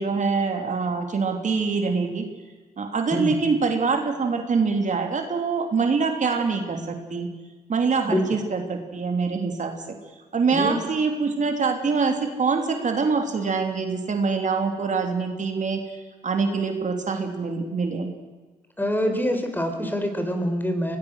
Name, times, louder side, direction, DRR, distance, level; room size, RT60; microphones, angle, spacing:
voice 1, 0.0-2.2 2.8-7.3 7.7-9.9 10.3-15.8 16.2-18.1, right 4 dB, 50° right, 5 dB, 3.1 m, -24 dB
voice 2, 18.8-21.0, equal, 10° left, 6 dB, 4.2 m, -25 dB
24.0 x 18.5 x 6.5 m, 1.3 s
cardioid pair, 65°, 16 cm